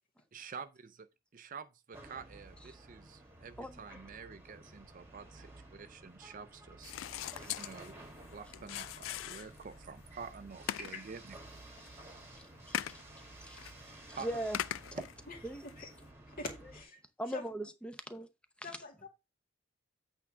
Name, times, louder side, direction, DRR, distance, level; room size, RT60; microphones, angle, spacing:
voice 1, 0.3-1.1 1.3-7.9 8.3-11.4 14.1-14.3 14.9-15.0, right 5 dB, 40° right, 0.4 m, -48 dB
sound 1, 1.9-16.8, right 1 dB, 10° right, 1.7 m, -53 dB
sound 2, 6.8-9.8 10.2-10.3 10.7-11.2 11.6-11.9 12.7-13.0 13.6-13.7 14.5-15.1 15.7-15.8, left 11 dB, 80° left, 0.3 m, -40 dB
voice 2, 10.8-11.1 15.3-15.4 15.6-15.9 16.3-17.0 17.3-17.4 18.6-19.1, left 2 dB, 45° left, 2.1 m, -44 dB
voice 3, 14.1-14.6 14.9-15.0 15.4-15.7 17.2-18.3, equal, 5° left, 0.7 m, -39 dB
8.5 x 3.5 x 6.0 m
head